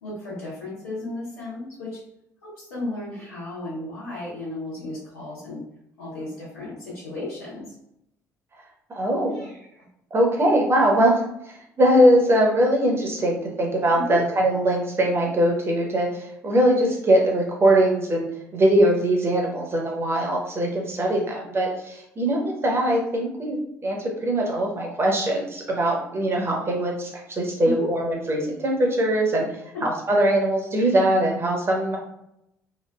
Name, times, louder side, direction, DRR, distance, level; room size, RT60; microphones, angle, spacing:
voice 1, 0.0-2.0 2.4-5.6 6.0-7.6 9.3-9.8 13.9-14.2 27.6-27.9 29.7-29.8, left 2 dB, 75° left, -13 dB, 1.2 m, -34 dB
voice 2, 8.9-9.5 10.1-11.2 11.8-29.5 29.8-32.0, right 1 dB, 30° right, -1 dB, 0.9 m, -21 dB
3.0 x 2.5 x 2.2 m, 0.80 s
figure-of-eight pair, 50°, 9 cm